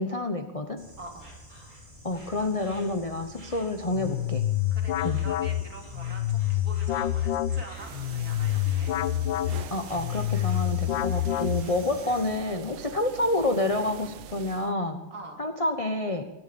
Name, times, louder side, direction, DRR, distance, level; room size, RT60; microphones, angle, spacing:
voice 1, 0.0-0.8 2.0-4.4 5.0-5.2 9.7-15.0 15.4-16.2, left 2 dB, 30° left, 6 dB, 0.6 m, -28 dB
Insect, 0.8-12.3, right 1 dB, 20° right, 4.9 m, -47 dB
voice 2, 1.0-1.3 2.4-2.5 4.7-8.9 12.9-13.0 15.1-15.4, right 2 dB, 45° right, 1 dB, 3.4 m, -45 dB
sound 1, 3.9-12.0, left 13 dB, 70° left, 1.3 m, -27 dB
sound 2, 7.7-14.7, right 12 dB, 90° right, 1.6 m, -44 dB
20.5 x 11.0 x 5.3 m, 1.1 s
omnidirectional pair, 2.3 m